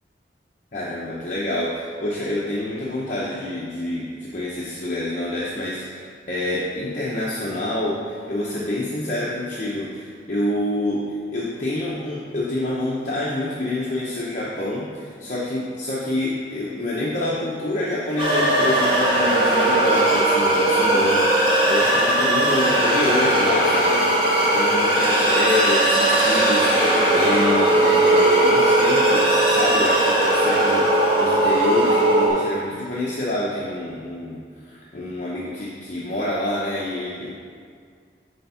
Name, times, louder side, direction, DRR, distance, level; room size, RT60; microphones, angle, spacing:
voice 1, 0.7-37.3, left 1 dB, 45° left, -6 dB, 0.8 m, -27 dB
sound 1, 18.2-32.3, right 1 dB, 30° right, 1.6 m, -18 dB
9.8 x 3.5 x 5.6 m, 2.1 s
head